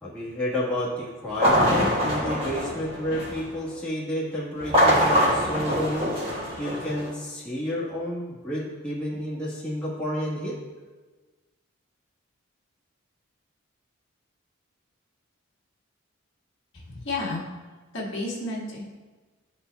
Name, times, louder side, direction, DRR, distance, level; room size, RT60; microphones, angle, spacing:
voice 1, 0.0-6.1 6.6-10.6, left 1 dB, 5° left, -9 dB, 1.3 m, -30 dB
sound 1, 1.3-3.5 4.6-7.1, equal, 25° right, 1.5 m, -23 dB
voice 2, 16.7-17.4 17.9-18.8, left 2 dB, 60° left, -5 dB, 1.4 m, -31 dB
11.5 x 4.3 x 2.2 m, 1.3 s
head